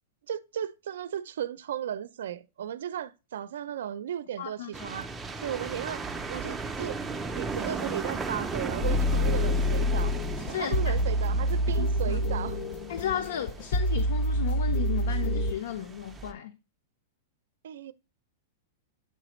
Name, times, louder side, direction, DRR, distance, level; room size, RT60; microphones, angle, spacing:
voice 1, 0.3-5.1 5.4-7.0 7.3-10.1 10.5-12.6 17.6-17.9, right 10 dB, 75° right, 0.4 m, -35 dB
voice 2, 4.4-4.9 10.4-10.9 11.8-12.2 12.9-16.5, left 9 dB, 75° left, 0.7 m, -34 dB
sound 1, 4.7-16.3, right 4 dB, 5° right, 0.4 m, -37 dB
sound 2, 8.8-15.5, equal, 40° left, 0.6 m, -27 dB
8.2 x 4.1 x 3.0 m
supercardioid pair, 175°, 0 cm